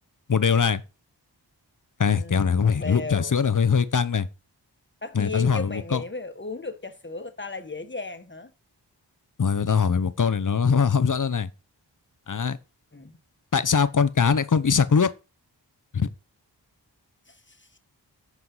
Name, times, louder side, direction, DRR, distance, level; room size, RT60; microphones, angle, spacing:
voice 1, 0.3-0.8 2.0-4.3 5.1-6.0 9.4-11.5 12.3-12.6 13.5-15.1 15.9-16.1, left 6 dB, 45° left, 0.7 m, -22 dB
voice 2, 2.1-3.3 5.0-8.5 12.9-13.1 17.3-17.6, left 3 dB, 25° left, 1.3 m, -35 dB
8.0 x 4.6 x 5.5 m
cardioid pair, 40°, 43 cm